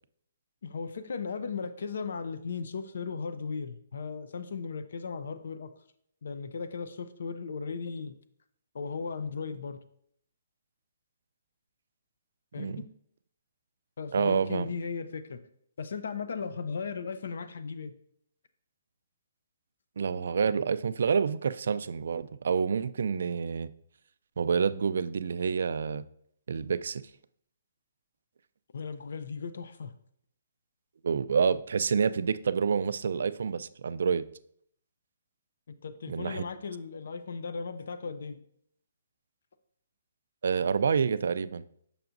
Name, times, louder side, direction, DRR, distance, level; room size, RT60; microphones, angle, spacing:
voice 1, 0.6-5.7 6.2-8.2 8.7-9.8 12.5-12.9 14.0-15.4 15.8-17.9 28.7-29.9 35.8-38.4, left 5 dB, 70° left, 0.5 m, -36 dB
voice 2, 14.1-14.7 20.0-23.7 24.4-26.1 26.5-27.0 31.0-34.2 36.1-36.4 40.4-41.6, right 6 dB, 70° right, 0.3 m, -28 dB
6.8 x 5.8 x 2.6 m
hypercardioid pair, 160°, 0 cm